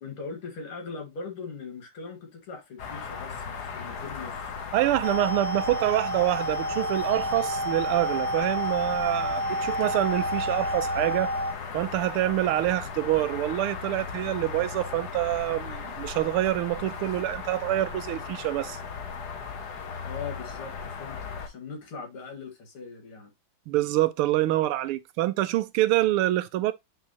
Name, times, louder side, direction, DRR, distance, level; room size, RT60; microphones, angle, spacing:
voice 1, 0.0-4.4 20.1-23.3, left 4 dB, 85° left, 2.8 m, -40 dB
sound 1, 2.8-21.5, left 5 dB, 55° left, 1.5 m, -37 dB
voice 2, 4.7-11.3 11.7-18.8 23.7-26.7, right 15 dB, 90° right, 1.6 m, -26 dB
sound 2, 5.0-11.5, equal, 70° right, 1.6 m, -30 dB
9.6 x 3.6 x 2.8 m
omnidirectional pair, 2.3 m